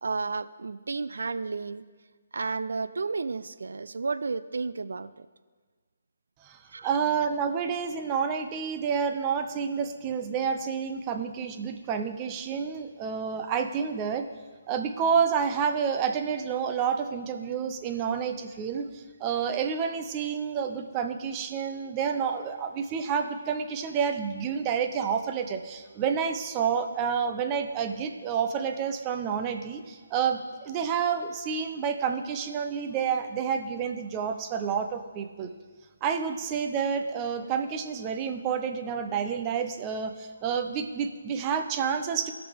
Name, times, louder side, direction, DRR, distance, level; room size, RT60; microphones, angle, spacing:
voice 1, 0.0-1.8 2.3-5.3 6.7-6.9, right 4 dB, 70° right, 14 dB, 0.4 m, -32 dB
voice 2, 6.4-14.2 14.7-35.5 36.0-42.3, right 7 dB, 25° right, 7 dB, 0.7 m, -29 dB
17.0 x 6.0 x 3.5 m, 1.5 s
figure-of-eight pair, 145°, 0 cm